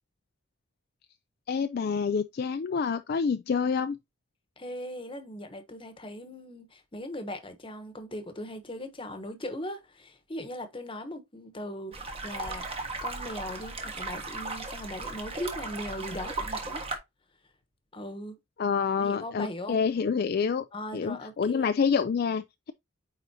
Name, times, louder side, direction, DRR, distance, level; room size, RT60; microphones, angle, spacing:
voice 1, 1.5-4.0 18.6-20.6 20.9-22.7, left 6 dB, 50° left, 0.4 m, -27 dB
voice 2, 4.6-16.8 17.9-18.4 19.0-19.8 20.7-21.7, left 1 dB, 25° left, 1.1 m, -39 dB
sound 1, 11.9-17.0, right 3 dB, 30° right, 1.3 m, -36 dB
9.1 x 3.9 x 2.7 m
head